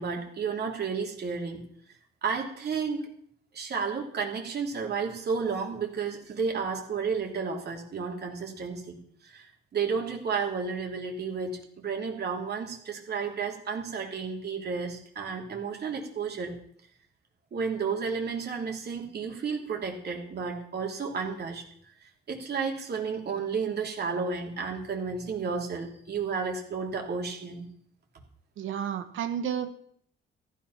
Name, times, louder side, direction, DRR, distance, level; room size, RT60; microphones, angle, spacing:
voice 1, 0.0-1.6 2.2-3.0 3.5-9.5 9.7-16.5 17.5-21.6 22.3-27.6, right 5 dB, 55° right, 1 dB, 3.2 m, -32 dB
voice 2, 28.6-29.7, right 8 dB, 80° right, 8 dB, 1.3 m, -31 dB
14.5 x 10.5 x 5.9 m, 0.65 s
cardioid pair, 90°, 20 cm